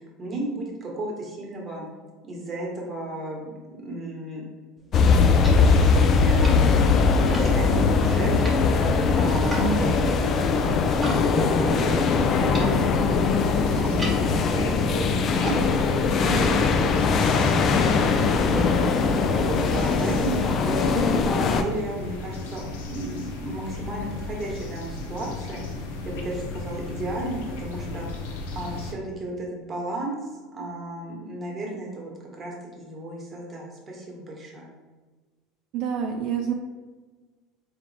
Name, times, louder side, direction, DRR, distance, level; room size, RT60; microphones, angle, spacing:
voice 1, 0.0-1.8 2.2-4.5 5.5-13.1 13.7-17.6 17.9-34.7, right 1 dB, 25° right, -1 dB, 1.2 m, -34 dB
sound 1, 4.8-11.2 11.5-17.4, equal, 10° right, 1.1 m, -38 dB
sound 2, 4.9-21.6, left 4 dB, 40° left, 0.4 m, -21 dB
voice 2, 9.6-10.0 35.7-36.5, right 8 dB, 60° right, 2 dB, 0.3 m, -27 dB
sound 3, 12.1-28.9, left 3 dB, 85° left, 0.6 m, -34 dB
3.7 x 3.1 x 3.2 m, 1.3 s
supercardioid pair, 110°, 0 cm